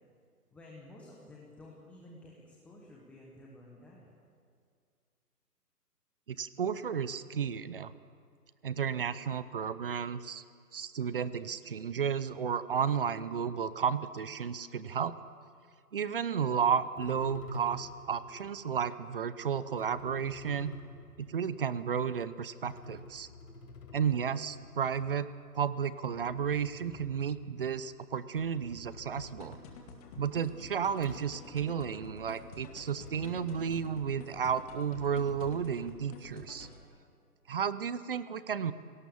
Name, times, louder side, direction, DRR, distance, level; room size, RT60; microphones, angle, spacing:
voice 1, 0.5-4.1 36.9-37.1, left 1 dB, 5° left, -4 dB, 1.2 m, -52 dB
voice 2, 6.3-7.9 8.6-10.4 10.7-15.1 15.9-20.7 21.2-23.3 23.9-25.3 25.5-29.6 30.2-36.7 37.5-38.7, right 7 dB, 35° right, 15 dB, 0.7 m, -33 dB
sound 1, 17.0-18.6 19.5-22.0 22.6-27.9 28.2-30.4 31.0-36.0, left 3 dB, 70° left, 5.2 m, -51 dB
sound 2, 29.2-36.8, left 4 dB, 20° left, 2.2 m, -50 dB
25.0 x 18.0 x 7.1 m, 2.3 s
hypercardioid pair, 155°, 47 cm